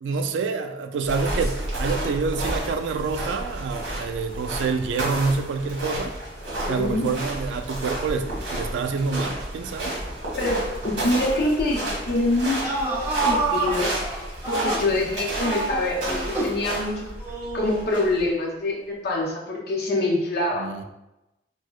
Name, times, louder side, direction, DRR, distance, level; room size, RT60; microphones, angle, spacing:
voice 1, 0.0-6.1 6.7-10.0 20.5-20.8, right 4 dB, 85° right, 7 dB, 0.3 m, -27 dB
sound 1, 1.0-18.3, right 1 dB, 70° right, 1.3 m, -31 dB
voice 2, 6.6-7.2 10.4-13.9 14.5-17.1 17.5-20.8, left 2 dB, 60° left, -2 dB, 0.7 m, -25 dB
sound 2, 12.4-15.0 15.4-16.6 17.2-18.2, right 2 dB, 15° right, 0.6 m, -28 dB
4.4 x 2.1 x 2.4 m, 0.95 s
head